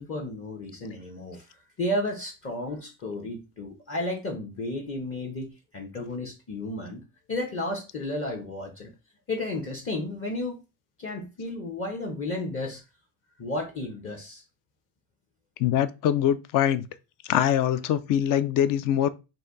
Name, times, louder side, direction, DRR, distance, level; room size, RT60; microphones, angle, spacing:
voice 1, 0.0-7.0 7.3-8.9 9.3-10.6 11.0-12.8 13.4-14.4, left 1 dB, 30° left, 1.0 m, -33 dB
voice 2, 15.6-16.9 17.3-19.1, left 10 dB, 50° left, 0.5 m, -23 dB
4.1 x 2.7 x 3.8 m
cardioid pair, 125°, 45 cm